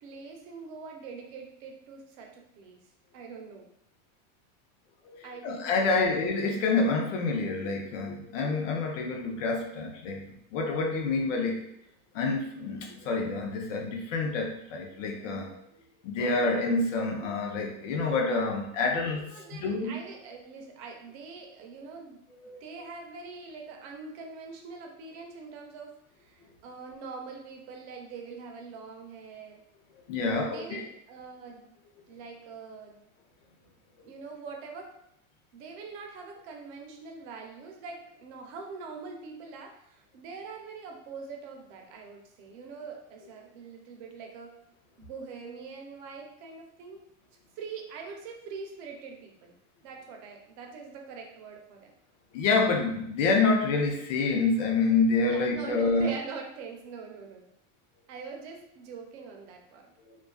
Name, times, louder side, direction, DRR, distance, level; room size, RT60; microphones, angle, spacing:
voice 1, 0.0-2.8 3.1-3.7 5.2-6.0 19.1-22.2 22.6-29.6 30.2-31.8 32.1-33.1 34.0-34.9 35.5-44.6 45.0-47.1 47.6-49.5 49.8-52.0 55.3-57.5 58.1-59.9, right 4 dB, 60° right, 2 dB, 0.7 m, -43 dB
voice 2, 5.0-10.3 10.5-11.7 12.1-15.5 16.0-19.9 22.4-22.6 30.1-30.8 32.1-32.2 52.3-56.1 60.1-60.2, left 3 dB, 85° left, 1 dB, 0.6 m, -27 dB
2.4 x 2.3 x 2.3 m, 0.75 s
supercardioid pair, 130°, 37 cm